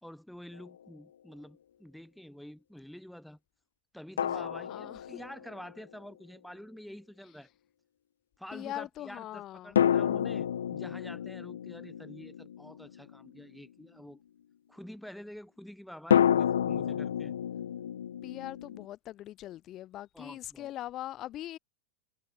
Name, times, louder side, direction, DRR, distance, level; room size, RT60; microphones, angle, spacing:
voice 1, 0.0-3.4 3.9-7.5 8.4-14.2 14.7-17.3 20.1-20.7, equal, ahead, 3.0 m, -48 dB
sound 1, 0.5-0.7 4.2-5.7 9.8-13.4 16.1-18.9, left 9 dB, 65° left, 0.5 m, -30 dB
voice 2, 4.4-5.2 8.5-9.8 18.2-21.6, left 14 dB, 35° left, 2.2 m, -41 dB
figure-of-eight pair, 90°, 0 cm